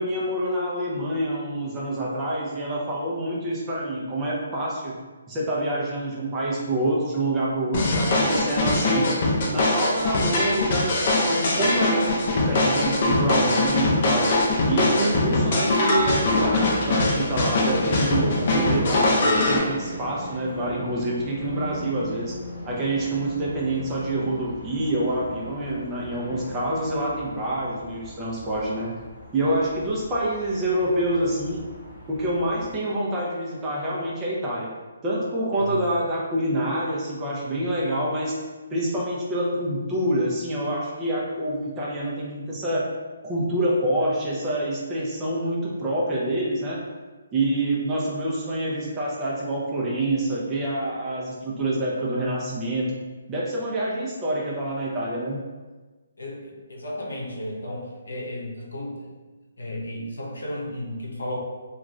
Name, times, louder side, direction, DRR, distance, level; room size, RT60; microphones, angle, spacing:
voice 1, 0.0-5.0 5.3-9.1 9.5-14.3 14.7-22.4 22.7-28.9 29.3-31.6 32.1-34.7 35.0-38.3 38.7-42.9 43.2-46.8 47.3-53.0 53.3-55.4, right 1 dB, 20° right, -5 dB, 0.6 m, -26 dB
sound 1, 7.7-19.6, left 2 dB, 45° left, 0.5 m, -22 dB
sound 2, 16.0-32.8, left 1 dB, 15° left, 1.1 m, -37 dB
voice 2, 56.2-59.1 59.6-61.4, left 1 dB, 85° left, -2 dB, 0.7 m, -34 dB
2.4 x 2.3 x 3.1 m, 1.3 s
hypercardioid pair, 150°, 0 cm